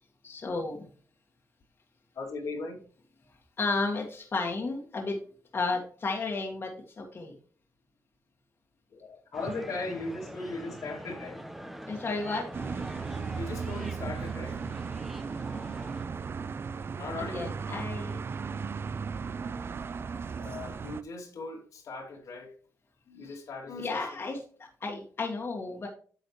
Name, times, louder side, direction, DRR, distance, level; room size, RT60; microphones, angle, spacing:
voice 1, 0.2-0.9 3.6-5.2 5.5-6.7 7.0-7.3 11.9-12.5 17.2-18.2 23.2-23.4 23.8-25.9, left 3 dB, 40° left, 1.8 m, -33 dB
voice 2, 2.1-2.8 8.9-11.4 13.4-14.6 16.9-17.5 20.4-22.5 23.1-24.1, left 3 dB, 75° left, 2.7 m, -38 dB
sound 1, 9.3-16.1, equal, 5° right, 1.0 m, -44 dB
sound 2, 12.5-21.0, right 5 dB, 40° right, 0.4 m, -36 dB
9.5 x 6.4 x 3.1 m
cardioid pair, 105°, 6 cm